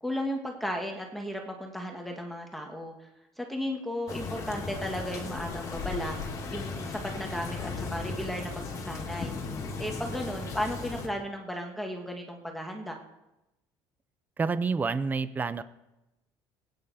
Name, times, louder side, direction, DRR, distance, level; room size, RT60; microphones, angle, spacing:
voice 1, 0.0-3.1 3.4-6.2 6.5-9.3 9.8-13.0, equal, ahead, 2 dB, 1.7 m, -35 dB
sound 1, 4.1-11.1, left 4 dB, 35° left, 2.4 m, -36 dB
voice 2, 14.4-15.6, right 4 dB, 20° right, 14 dB, 0.7 m, -28 dB
20.5 x 9.4 x 4.2 m, 0.95 s
cardioid pair, 135°, 9 cm